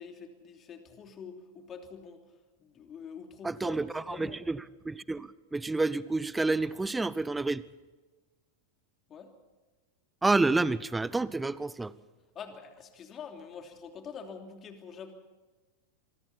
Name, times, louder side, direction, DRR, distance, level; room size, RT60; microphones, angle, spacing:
voice 1, 0.0-2.2 2.6-4.4 9.1-9.3 12.3-15.1, left 6 dB, 25° left, 4 dB, 3.1 m, -45 dB
voice 2, 3.4-7.6 10.2-11.9, right 3 dB, 10° right, 20 dB, 0.7 m, -29 dB
27.5 x 23.5 x 4.4 m, 1.2 s
figure-of-eight pair, 90°, 0 cm